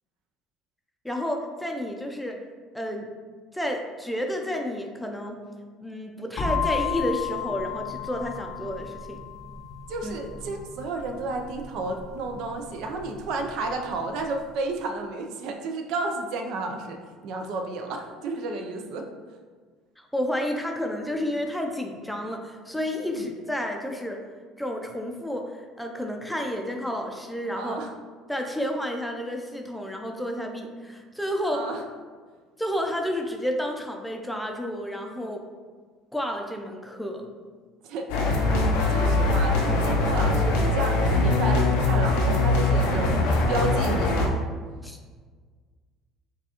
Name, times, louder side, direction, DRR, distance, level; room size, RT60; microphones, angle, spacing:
voice 1, 1.0-2.4 2.7-3.1 3.5-5.4 5.8-9.2 10.0-10.2 20.0-24.2 24.6-27.8 28.3-31.7 32.6-35.4 36.1-37.3 44.8-45.0, equal, 5° left, 2 dB, 0.5 m, -31 dB
sound 1, 6.4-14.2, left 6 dB, 50° left, 0.7 m, -34 dB
voice 2, 9.9-17.0 17.2-19.0 23.0-23.2 27.5-27.9 31.5-31.8 37.8-38.3 38.9-44.3, right 3 dB, 70° right, 4 dB, 0.4 m, -32 dB
sound 2, 38.1-44.3, left 2 dB, 85° left, 0.5 m, -22 dB
4.7 x 2.4 x 2.9 m, 1.5 s
supercardioid pair, 95°, 0 cm